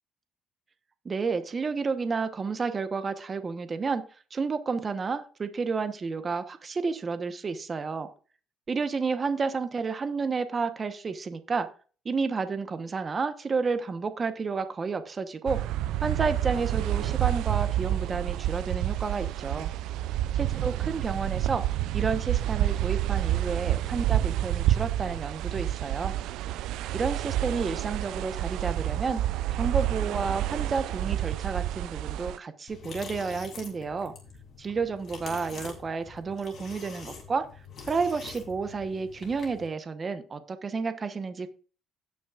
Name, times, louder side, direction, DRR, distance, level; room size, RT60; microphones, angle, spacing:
voice 1, 1.0-4.0 4.3-8.1 8.7-11.7 12.0-15.6 16.0-19.7 20.4-21.6 21.9-26.1 26.9-29.2 29.6-34.1 34.6-37.5 37.9-41.5, right 4 dB, 30° right, 9 dB, 1.1 m, -31 dB
sound 1, 15.5-32.4, right 13 dB, 80° right, 0.4 m, -29 dB
sound 2, 32.7-39.7, left 5 dB, 50° left, 3.3 m, -45 dB
17.0 x 6.2 x 2.5 m, 0.39 s
cardioid pair, 105°, 0 cm